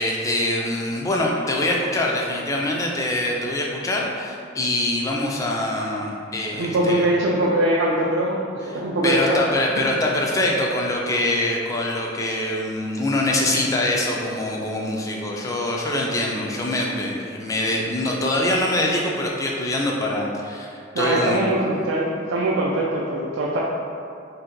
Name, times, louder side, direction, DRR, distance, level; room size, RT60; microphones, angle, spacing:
voice 1, 0.0-7.0 9.0-21.4, left 1 dB, 15° left, -2 dB, 0.3 m, -24 dB
voice 2, 6.5-9.4 9.7-10.0 20.9-23.6, right 1 dB, 85° right, -4 dB, 0.4 m, -22 dB
2.7 x 2.1 x 3.7 m, 2.4 s
head